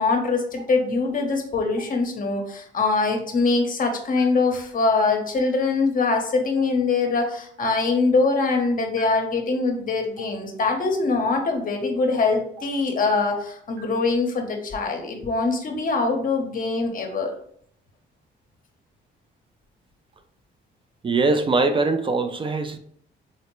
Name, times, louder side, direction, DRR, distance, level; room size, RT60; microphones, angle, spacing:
voice 1, 0.0-17.3, left 3 dB, 45° left, 0.7 m, -23 dB
Stream, 0.6-0.7 1.8-1.9 3.0-3.1 4.2-4.3 5.4-5.5 6.6-6.7 7.8-7.9 9.0-9.1 10.2-10.3 11.4-11.5 12.6-12.7 13.8-13.9, right 8 dB, 90° right, 1.1 m, -41 dB
voice 2, 21.0-22.8, right 3 dB, 25° right, 0.4 m, -22 dB
3.9 x 2.1 x 3.0 m
cardioid pair, 90°, 20 cm